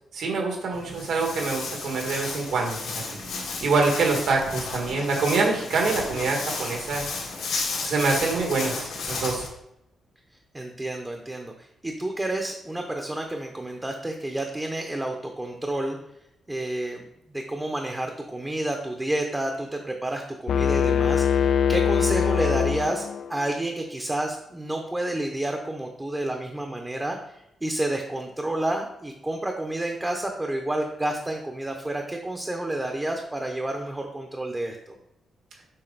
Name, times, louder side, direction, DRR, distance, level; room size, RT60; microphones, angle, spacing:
voice 1, 0.1-3.2 3.6-7.0 7.8-9.5, right 3 dB, 80° right, 0 dB, 1.8 m, -25 dB
Walk footsteps, 0.7-9.5, left 3 dB, 90° left, 2.1 m, -33 dB
voice 2, 10.5-16.0 16.5-17.0 17.3-27.4 27.6-35.0, right 1 dB, 10° right, 3 dB, 0.7 m, -30 dB
sound 1, 20.5-23.4, left 7 dB, 55° left, 0.3 m, -22 dB
7.6 x 5.1 x 4.0 m, 0.81 s
wide cardioid pair, 160°, 0 cm